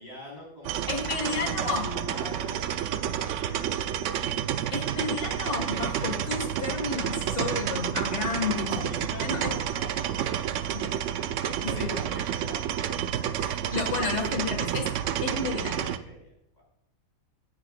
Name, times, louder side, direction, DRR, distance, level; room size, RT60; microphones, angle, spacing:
voice 1, 0.0-2.7 3.1-4.3 4.6-4.8 8.4-11.0 11.4-13.4 15.9-16.6, left 1 dB, 30° left, -3 dB, 4.1 m, -44 dB
sound 1, 0.6-16.0, right 10 dB, 70° right, 0.9 m, -30 dB
voice 2, 0.9-1.9 4.7-8.9 9.2-9.5 10.7-10.9 11.6-11.9 13.4-14.9 15.2-15.9, left 4 dB, 55° left, 3 dB, 2.0 m, -31 dB
17.5 x 7.2 x 2.4 m, 0.79 s
omnidirectional pair, 1.5 m